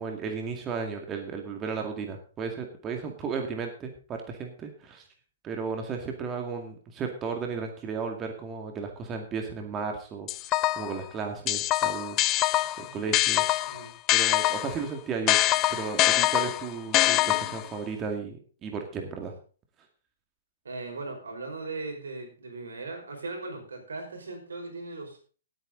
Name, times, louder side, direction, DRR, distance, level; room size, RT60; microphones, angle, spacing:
voice 1, 0.0-5.0 5.4-12.5 12.8-13.4 14.1-15.4 15.7-19.3, right 5 dB, 20° right, 3 dB, 2.1 m, -34 dB
sound 1, 10.3-11.0 11.5-14.8 15.3-17.7, left 17 dB, 30° left, 0.5 m, -24 dB
voice 2, 12.6-12.9 13.7-13.9 20.6-25.2, right 3 dB, 80° right, 4 dB, 5.2 m, -38 dB
17.0 x 8.9 x 3.9 m, 0.39 s
hypercardioid pair, 130°, 0 cm